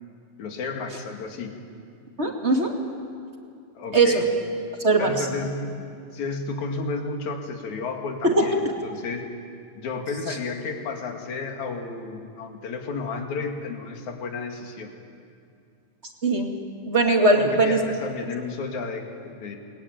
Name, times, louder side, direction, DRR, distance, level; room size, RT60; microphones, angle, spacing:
voice 1, 0.4-1.6 3.8-4.3 5.0-5.8 6.1-9.3 9.8-15.0 17.4-19.6, left 4 dB, 60° left, 3 dB, 3.5 m, -32 dB
voice 2, 2.2-2.7 3.9-4.2 4.8-5.2 8.2-8.5 16.2-16.5 16.9-17.8, right 2 dB, 25° right, 1 dB, 2.1 m, -20 dB
28.5 x 21.0 x 9.5 m, 2.5 s
omnidirectional pair, 3.8 m